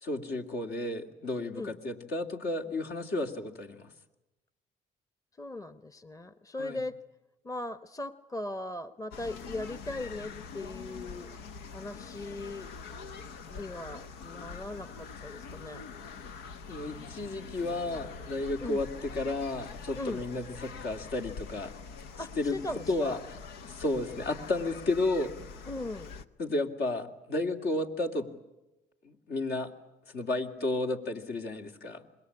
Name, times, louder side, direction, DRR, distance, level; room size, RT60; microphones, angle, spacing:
voice 1, 0.0-3.9 6.6-6.8 16.7-21.7 22.4-22.6 22.9-23.2 23.6-25.3 26.4-28.3 29.0-29.7 30.1-32.0, left 2 dB, 65° left, 3 dB, 2.7 m, -32 dB
voice 2, 5.4-7.0 7.4-11.3 11.7-12.7 13.5-15.8 18.6-18.8 20.0-20.2 22.2-23.2 25.7-26.1, left 2 dB, 20° left, 13 dB, 1.1 m, -39 dB
sound 1, 9.1-26.2, left 5 dB, 85° left, 1.0 m, -44 dB
26.0 x 21.5 x 9.8 m, 0.97 s
supercardioid pair, 60°, 18 cm